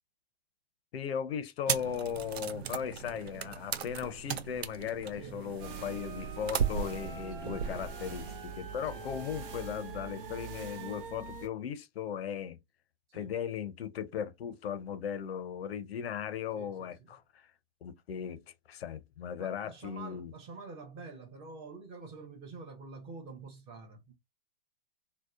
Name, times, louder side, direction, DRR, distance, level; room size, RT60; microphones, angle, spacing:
voice 1, 0.9-12.6 13.1-17.5 17.8-20.3, left 8 dB, 75° left, 0.5 m, -37 dB
sound 1, 1.7-8.4, right 7 dB, 85° right, 0.5 m, -37 dB
sound 2, 5.6-11.5, right 5 dB, 60° right, 0.8 m, -43 dB
voice 2, 8.8-9.3 13.1-13.3 16.6-17.1 19.4-24.1, right 4 dB, 20° right, 0.5 m, -48 dB
2.7 x 2.1 x 2.3 m
hypercardioid pair, 130°, 31 cm